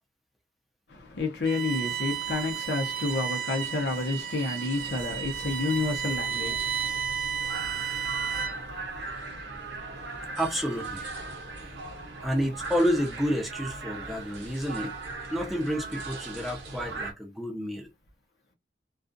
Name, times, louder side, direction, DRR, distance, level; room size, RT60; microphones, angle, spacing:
voice 1, 0.9-10.4 11.2-12.3, left 3 dB, 75° left, 0.7 m, -32 dB
Bowed string instrument, 1.5-8.7, right 7 dB, 55° right, 0.3 m, -32 dB
sound 1, 4.7-17.1, right 3 dB, 75° right, 0.7 m, -39 dB
voice 2, 10.4-11.0 12.2-15.0 15.3-17.9, equal, ahead, 0.6 m, -29 dB
2.4 x 2.3 x 2.5 m
head